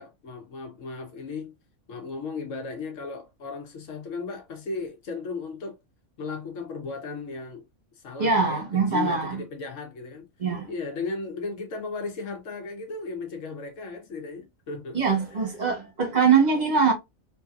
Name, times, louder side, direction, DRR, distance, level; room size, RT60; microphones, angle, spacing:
voice 1, 0.0-1.5 1.9-5.8 6.2-7.6 8.0-10.3 10.7-15.0 15.3-15.5, left 4 dB, 65° left, 1.2 m, -35 dB
voice 2, 8.2-9.4 10.4-10.7 14.9-16.9, right 5 dB, 35° right, 0.8 m, -22 dB
3.2 x 2.6 x 2.3 m
omnidirectional pair, 1.4 m